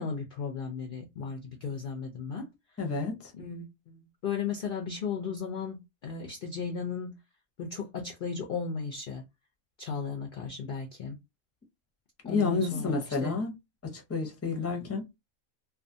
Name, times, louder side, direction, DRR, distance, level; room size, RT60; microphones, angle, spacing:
voice 1, 0.0-2.5 3.3-7.2 7.6-9.2 9.8-11.2 12.2-13.4, left 5 dB, 65° left, 0.5 m, -35 dB
voice 2, 2.8-3.3 12.2-13.5 13.8-15.0, left 4 dB, 15° left, 0.5 m, -30 dB
2.5 x 2.3 x 2.6 m
omnidirectional pair, 1.5 m